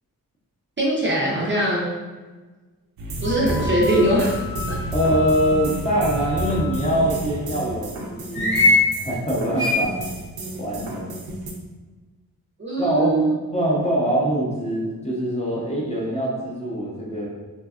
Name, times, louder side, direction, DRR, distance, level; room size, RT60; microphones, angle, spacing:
voice 1, 0.8-1.9 3.2-4.8 12.6-13.4, right 1 dB, 30° right, -5 dB, 0.5 m, -21 dB
sound 1, 3.0-11.5, right 2 dB, 85° right, 0.5 m, -31 dB
sound 2, 3.2-7.1 8.3-8.8 9.6-9.7, left 2 dB, 70° left, 1.0 m, -25 dB
voice 2, 4.9-10.0 10.6-11.2 12.8-13.2 13.5-17.3, equal, 20° left, -5 dB, 0.6 m, -23 dB
2.6 x 2.2 x 2.3 m, 1.3 s
wide cardioid pair, 95°, 37 cm